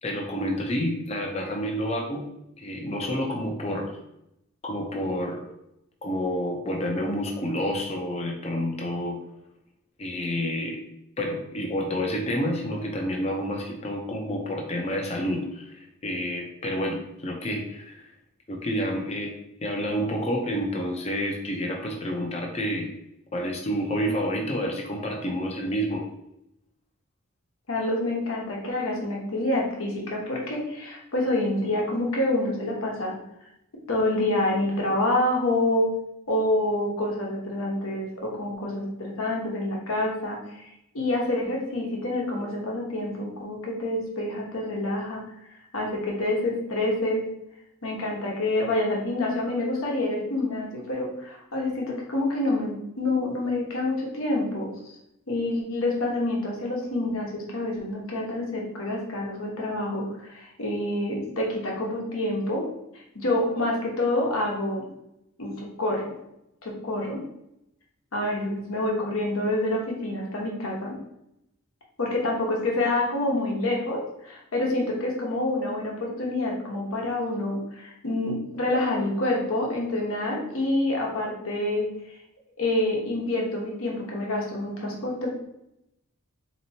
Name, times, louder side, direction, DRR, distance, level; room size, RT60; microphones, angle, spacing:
voice 1, 0.0-2.3 2.6-3.9 4.6-5.4 6.0-9.2 10.0-10.8 11.2-18.0 18.5-19.3 19.6-22.9 23.3-26.1, equal, 30° left, 1 dB, 0.5 m, -29 dB
voice 2, 27.7-33.2 33.9-35.9 36.3-40.7 40.9-45.2 45.7-47.2 47.8-54.7 55.3-62.6 63.1-64.9 65.4-66.0 66.6-67.2 68.1-70.9 72.0-81.9 82.6-85.3, left 1 dB, 80° left, -2 dB, 1.0 m, -27 dB
4.1 x 2.9 x 2.7 m, 0.82 s
head